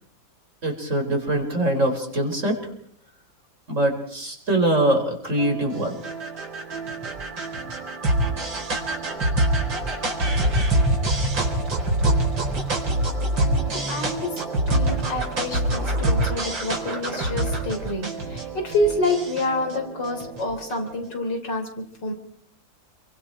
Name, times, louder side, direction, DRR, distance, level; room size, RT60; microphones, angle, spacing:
voice 1, 0.6-2.6 3.7-5.9, right 1 dB, 40° right, 2 dB, 4.8 m, -23 dB
sound 1, 5.4-20.9, right 1 dB, 70° right, 4.6 m, -25 dB
voice 2, 13.3-14.4 14.7-22.1, left 2 dB, 65° left, 4 dB, 4.0 m, -28 dB
28.0 x 23.5 x 4.6 m, 0.63 s
omnidirectional pair, 2.1 m